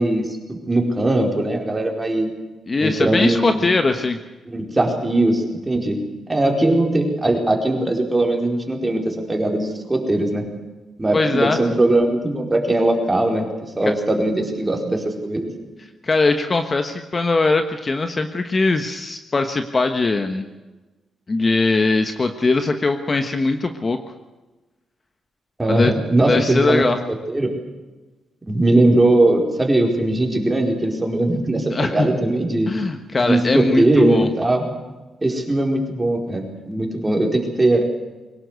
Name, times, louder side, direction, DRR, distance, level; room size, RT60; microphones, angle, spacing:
voice 1, 0.0-2.3 2.8-3.8 4.5-6.0 6.3-10.5 11.0-15.5 25.6-27.5 28.5-32.7 33.3-34.7 35.2-37.8, right 1 dB, 15° right, 1 dB, 4.7 m, -20 dB
voice 2, 2.7-4.2 11.1-11.6 16.0-20.4 21.3-24.0 25.7-25.9 26.2-27.0 31.7-32.1 32.7-34.3, left 3 dB, 30° left, 7 dB, 1.3 m, -20 dB
22.5 x 19.0 x 8.2 m, 1.2 s
cardioid pair, 125°, 0 cm